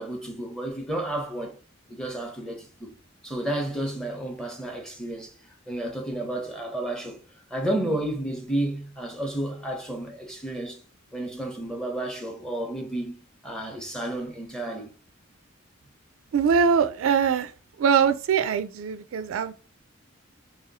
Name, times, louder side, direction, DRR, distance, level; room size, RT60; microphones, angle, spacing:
voice 1, 0.0-1.6 1.9-2.9 3.2-7.2 7.5-10.8 11.1-14.9, right 1 dB, 5° left, 0.7 m, -31 dB
voice 2, 16.3-17.5 17.8-19.5, right 6 dB, 75° right, 0.3 m, -22 dB
2.9 x 2.7 x 3.9 m
head